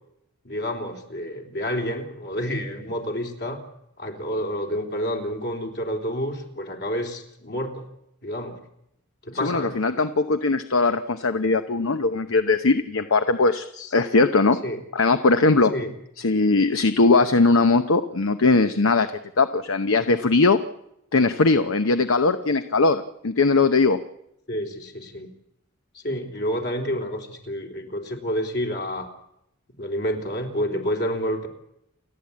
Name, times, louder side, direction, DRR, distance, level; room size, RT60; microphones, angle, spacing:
voice 1, 0.5-3.6 4.0-7.9 8.2-8.6 9.2-9.8 13.8-13.9 14.6-14.8 15.7-15.9 24.5-25.3 26.0-29.1 29.8-31.5, equal, 55° left, 3 dB, 3.6 m, -29 dB
voice 2, 9.4-14.6 14.9-15.7 16.2-20.6 21.1-24.0, left 3 dB, 75° left, 10 dB, 0.9 m, -20 dB
29.5 x 12.0 x 8.6 m, 0.81 s
head